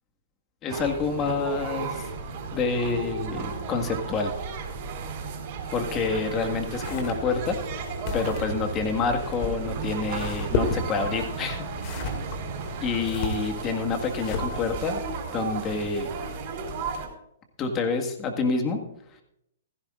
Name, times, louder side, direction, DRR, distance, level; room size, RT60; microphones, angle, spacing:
voice 1, 0.6-2.1 2.5-4.3 5.7-7.6 8.1-11.7 12.8-15.0 15.3-16.1 17.6-18.8, left 4 dB, 25° left, 5 dB, 1.8 m, -28 dB
sound 1, 0.7-17.1, right 5 dB, 45° right, 3.9 m, -34 dB
sound 2, 6.7-15.0, left 4 dB, 40° left, 2.3 m, -34 dB
16.0 x 15.0 x 2.5 m, 0.76 s
hypercardioid pair, 140°, 0 cm